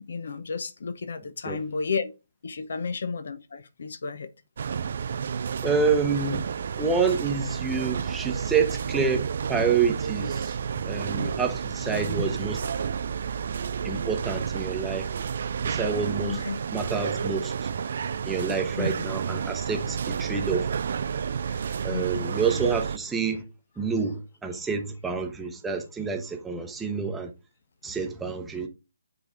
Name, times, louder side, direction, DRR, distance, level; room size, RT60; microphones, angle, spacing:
voice 1, 0.0-2.1 2.4-4.3 16.2-16.6 18.8-19.0 21.9-22.3, left 5 dB, 55° left, 0.6 m, -32 dB
sound 1, 4.6-23.0, right 6 dB, 45° right, 0.4 m, -31 dB
voice 2, 5.6-6.5 6.8-10.6 10.8-12.7 13.8-15.1 15.6-16.4 16.7-17.7 18.2-20.7 21.8-23.4 23.8-27.3 27.8-28.7, right 5 dB, 5° right, 0.8 m, -28 dB
8.8 x 3.3 x 3.6 m
figure-of-eight pair, 140°, 0 cm